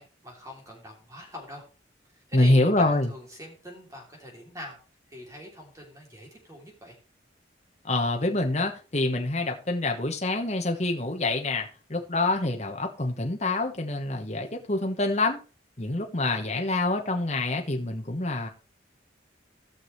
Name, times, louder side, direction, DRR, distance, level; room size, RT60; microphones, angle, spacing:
voice 1, 0.0-1.6 2.1-4.8 5.1-7.0, equal, 20° right, 3.1 m, -43 dB
voice 2, 2.3-3.1 7.8-15.4 15.8-18.5, left 2 dB, 35° left, 1.2 m, -26 dB
17.5 x 6.3 x 3.3 m
head